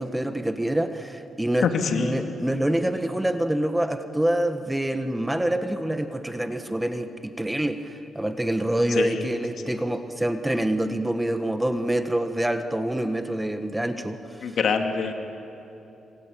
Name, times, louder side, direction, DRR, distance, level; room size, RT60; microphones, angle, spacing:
voice 1, 0.0-1.7 2.0-14.6, right 1 dB, 10° right, 8 dB, 1.4 m, -26 dB
voice 2, 1.6-2.2 8.9-9.2 9.6-9.7 14.4-15.1, left 5 dB, 65° left, 4 dB, 2.5 m, -25 dB
26.5 x 25.0 x 8.7 m, 2.9 s
cardioid pair, 90°, 0 cm